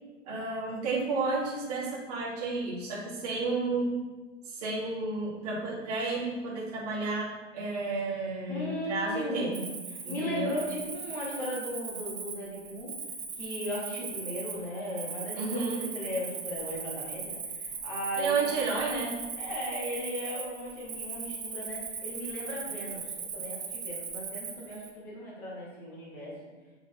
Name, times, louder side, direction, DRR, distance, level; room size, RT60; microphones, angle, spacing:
voice 1, 0.3-3.9 4.5-7.3 7.5-9.5 10.0-10.5 15.4-15.8 18.2-19.1, right 3 dB, 30° right, -6 dB, 3.0 m, -31 dB
voice 2, 8.5-12.9 13.4-15.6 15.9-18.8 19.4-26.4, equal, 5° left, -5 dB, 0.7 m, -37 dB
Cricket, 9.5-24.9, right 5 dB, 55° right, 2.1 m, -39 dB
7.5 x 6.9 x 4.3 m, 1.2 s
hypercardioid pair, 175°, 37 cm